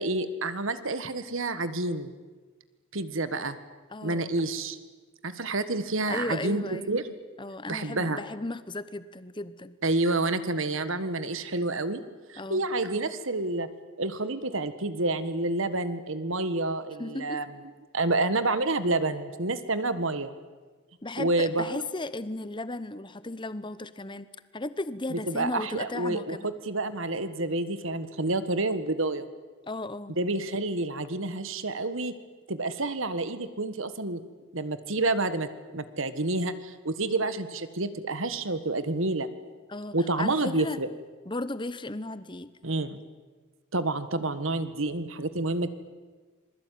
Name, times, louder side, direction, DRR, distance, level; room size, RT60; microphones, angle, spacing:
voice 1, 0.0-2.1 2.9-3.6 4.0-4.8 5.2-7.1 7.7-8.2 9.8-12.0 12.3-13.7 14.0-17.5 17.9-20.3 21.2-21.8 25.1-29.3 30.2-32.1 32.5-34.2 34.5-35.5 35.7-39.3 39.9-40.9 42.6-43.0 43.7-45.7, right 2 dB, 60° right, 12 dB, 1.6 m, -29 dB
voice 2, 3.9-4.3 6.1-7.0 7.4-9.8 12.4-12.7 17.0-17.4 21.0-24.3 24.5-26.5 29.7-30.2 39.7-40.8 41.3-42.5, left 2 dB, 20° left, 14 dB, 0.9 m, -35 dB
26.5 x 21.0 x 9.4 m, 1.4 s
head